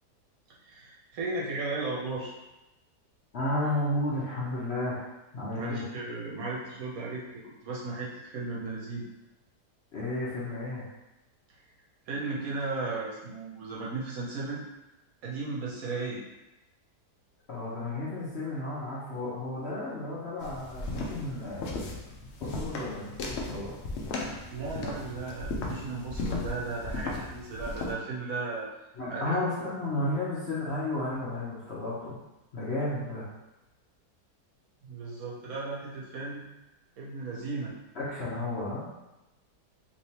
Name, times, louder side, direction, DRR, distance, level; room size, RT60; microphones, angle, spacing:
voice 1, 0.6-2.3 5.6-9.1 12.1-14.6 15.2-16.2 24.5-28.7 29.1-29.5 34.8-36.4 37.0-37.7, right 3 dB, 65° right, -5 dB, 1.1 m, -35 dB
voice 2, 3.3-5.1 5.3-5.8 9.9-10.9 17.5-23.8 29.0-32.2 32.5-33.3 37.9-38.9, left 2 dB, 50° left, -8 dB, 0.9 m, -33 dB
sound 1, 20.4-27.9, left 2 dB, 85° left, 0.6 m, -36 dB
3.2 x 2.9 x 2.8 m, 0.98 s
omnidirectional pair, 1.8 m